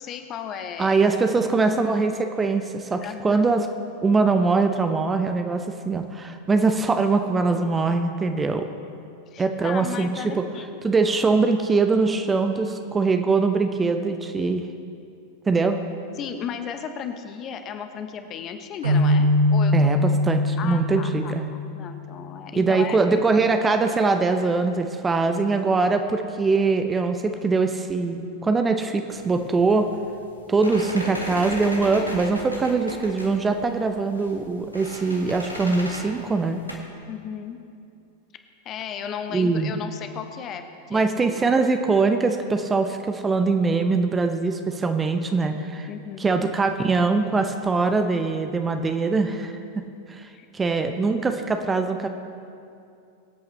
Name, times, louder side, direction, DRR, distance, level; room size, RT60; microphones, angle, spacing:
voice 1, 0.0-1.0 1.2-1.8 3.0-3.4 9.3-10.7 16.2-20.2 20.6-21.3 21.7-23.3 37.1-37.6 38.6-41.5 45.9-46.3 50.3-50.5, left 8 dB, 30° left, 7 dB, 0.9 m, -35 dB
voice 2, 0.8-3.7 4.0-8.6 9.4-10.4 10.8-14.7 15.5-15.8 19.7-21.5 22.5-29.9 30.5-36.6 39.3-39.7 40.9-45.9 46.2-49.5 50.1-50.3 50.5-52.1, right 4 dB, 15° right, 7 dB, 0.7 m, -22 dB
sound 1, 18.8-22.4, left 1 dB, 75° right, 2.3 m, -22 dB
sound 2, 29.1-36.7, left 1 dB, 90° left, 1.5 m, -36 dB
24.0 x 8.3 x 3.3 m, 2.5 s
figure-of-eight pair, 90°, 0 cm